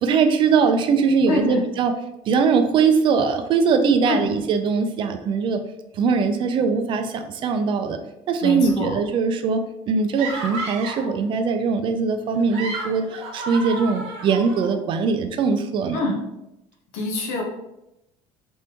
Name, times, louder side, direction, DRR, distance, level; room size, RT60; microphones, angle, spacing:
voice 1, 0.0-1.9 2.3-5.6 5.9-8.0 8.3-16.0, right 5 dB, 45° right, 7 dB, 0.4 m, -21 dB
voice 2, 1.3-1.6 4.1-4.2 8.4-9.0 15.9-16.2 16.9-17.4, left 3 dB, 90° left, 1 dB, 0.9 m, -25 dB
sound 1, 10.2-11.1 12.3-14.7, right 3 dB, 65° right, 1.0 m, -32 dB
3.4 x 2.6 x 2.9 m, 0.87 s
cardioid pair, 140°, 12 cm